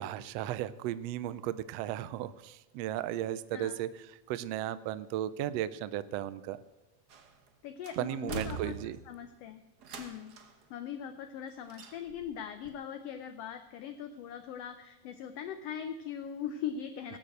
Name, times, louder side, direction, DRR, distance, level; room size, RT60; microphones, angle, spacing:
voice 1, 0.0-3.9 4.3-6.6 8.0-9.0, right 12 dB, 80° right, 14 dB, 1.5 m, -35 dB
sound 1, 7.1-7.5 7.8-9.2 9.8-10.6 11.7-12.3 12.7-12.8, right 5 dB, 60° right, 1.0 m, -43 dB
voice 2, 7.6-8.7 9.1-9.6 10.0-10.4 10.7-17.2, left 8 dB, 75° left, 7 dB, 1.5 m, -40 dB
18.0 x 6.7 x 7.9 m, 1.1 s
omnidirectional pair, 3.4 m